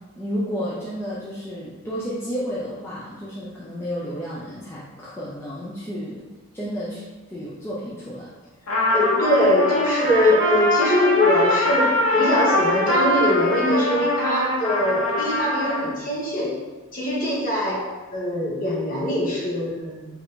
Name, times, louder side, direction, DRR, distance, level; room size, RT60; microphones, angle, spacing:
voice 1, 0.2-6.2 6.5-8.3, equal, 10° left, -8 dB, 0.5 m, -31 dB
Trumpet, 8.7-15.9, equal, 85° left, 1.0 m, -23 dB
voice 2, 8.9-16.6 16.9-20.1, left 1 dB, 40° left, -5 dB, 1.1 m, -22 dB
4.7 x 2.7 x 3.7 m, 1.2 s
head